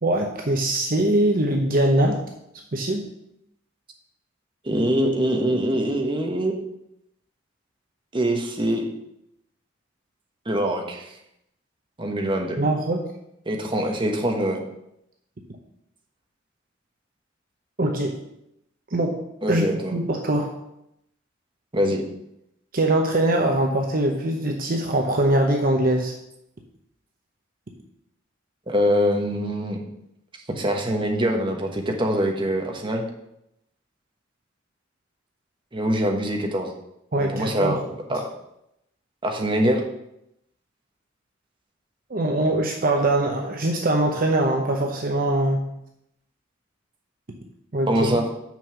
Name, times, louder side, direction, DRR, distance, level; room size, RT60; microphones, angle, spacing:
voice 1, 0.0-2.2 2.7-3.0 12.6-13.0 17.8-18.2 18.9-19.2 19.5-19.6 19.9-20.5 22.7-26.1 37.1-37.8 42.1-45.6 47.7-47.9, right 1 dB, 50° right, 2 dB, 0.8 m, -22 dB
voice 2, 4.6-6.5 8.1-8.8 10.5-11.1 12.0-12.6 13.5-14.6 19.4-19.9 21.7-22.0 28.7-29.8 30.5-33.0 35.7-36.7 37.2-37.8 38.1-38.3 39.2-39.8 47.9-48.2, equal, 25° right, 2 dB, 1.1 m, -23 dB
6.1 x 5.4 x 7.0 m, 0.80 s
head